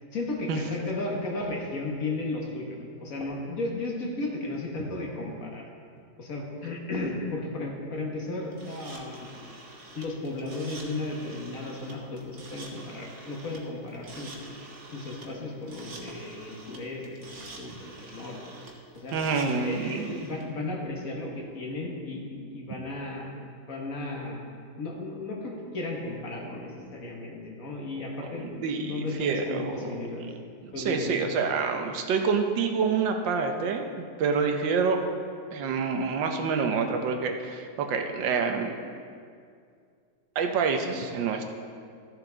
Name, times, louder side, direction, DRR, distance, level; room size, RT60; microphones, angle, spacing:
voice 1, 0.1-5.7 6.2-9.3 9.9-14.3 14.9-18.4 18.9-23.3 23.7-24.4 24.8-28.5 28.8-30.3 30.7-31.3, left 2 dB, 50° left, -1 dB, 1.7 m, -34 dB
sound 1, 8.5-20.4, right 2 dB, 45° right, 1.4 m, -46 dB
voice 2, 19.1-20.2 28.4-29.9 30.6-33.8 34.2-35.0 35.5-38.7 40.3-41.4, right 5 dB, 90° right, 4 dB, 1.6 m, -27 dB
14.5 x 7.2 x 3.9 m, 2.3 s
omnidirectional pair, 1.9 m